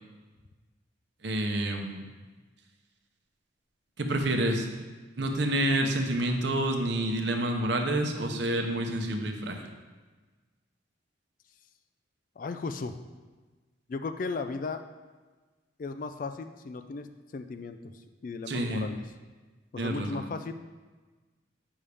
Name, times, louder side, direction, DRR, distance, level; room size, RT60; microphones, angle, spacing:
voice 1, 1.2-2.1 4.0-4.7 5.2-9.6 18.5-18.9 19.8-20.3, right 1 dB, 60° right, 3 dB, 0.8 m, -28 dB
voice 2, 12.4-13.0 13.9-14.9 15.8-17.1 17.3-19.0 19.7-20.5, left 4 dB, 45° left, 9 dB, 0.3 m, -36 dB
8.4 x 5.4 x 3.4 m, 1.3 s
head